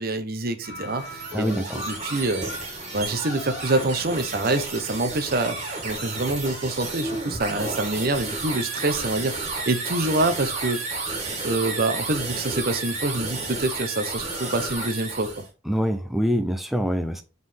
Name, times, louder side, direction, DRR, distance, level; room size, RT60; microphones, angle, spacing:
voice 1, 0.0-9.3 9.7-10.8 11.4-15.4, right 2 dB, 55° right, 0.9 m, -26 dB
sound 1, 0.6-14.9, left 2 dB, 65° left, 1.6 m, -44 dB
sound 2, 0.8-15.5, right 3 dB, 35° right, 2.0 m, -32 dB
voice 2, 1.3-1.8 15.7-17.2, equal, ahead, 0.5 m, -25 dB
7.5 x 3.9 x 3.4 m
head